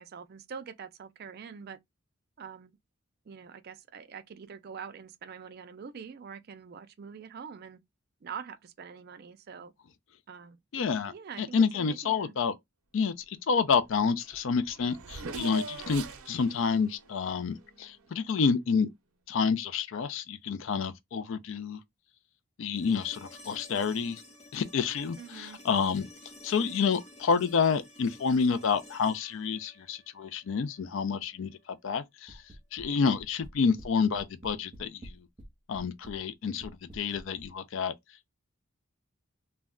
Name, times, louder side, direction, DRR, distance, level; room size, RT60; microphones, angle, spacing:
voice 1, 0.0-1.8 2.4-2.8 3.3-7.8 8.2-9.7 10.3-10.6 11.1-12.3 15.3-15.6 25.2-25.6, right 6 dB, 45° right, 0.3 m, -44 dB
voice 2, 10.7-12.5 12.9-18.9 19.3-21.8 22.6-24.2 24.5-26.1 26.4-32.4 32.7-35.3 35.7-37.9, left 5 dB, 60° left, 0.4 m, -29 dB
Race car auto racing / Accelerating revving vroom, 13.9-14.0 14.2-18.2, right 3 dB, 90° right, 0.6 m, -43 dB
sound 1, 22.8-30.8 32.9-33.0, left 1 dB, 30° left, 0.8 m, -52 dB
sound 2, 32.3-32.9 33.2-33.9 34.1-35.5 35.7-36.2 36.6-37.5, right 1 dB, 20° right, 0.7 m, -47 dB
2.2 x 2.1 x 3.5 m
head